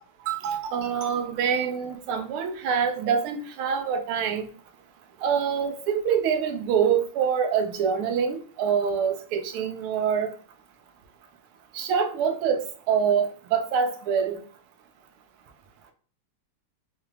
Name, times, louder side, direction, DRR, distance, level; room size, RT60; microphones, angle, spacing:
voice 1, 0.3-4.5 5.2-10.3 11.7-14.4, right 7 dB, 80° right, 6 dB, 1.5 m, -25 dB
4.8 x 2.4 x 3.2 m, 0.42 s
omnidirectional pair, 2.4 m